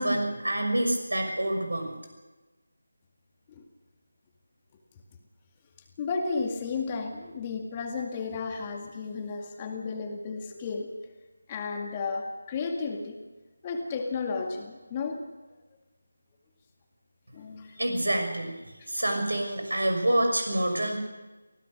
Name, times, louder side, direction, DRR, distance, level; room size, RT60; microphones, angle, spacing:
voice 1, 0.0-1.9 17.8-18.5 18.9-21.0, right 1 dB, 70° right, 5 dB, 6.1 m, -27 dB
voice 2, 6.0-10.9 11.5-13.2 13.6-15.3 17.3-17.8, left 4 dB, 20° left, 3 dB, 2.0 m, -33 dB
24.5 x 17.0 x 6.5 m, 1.2 s
figure-of-eight pair, 160°, 0 cm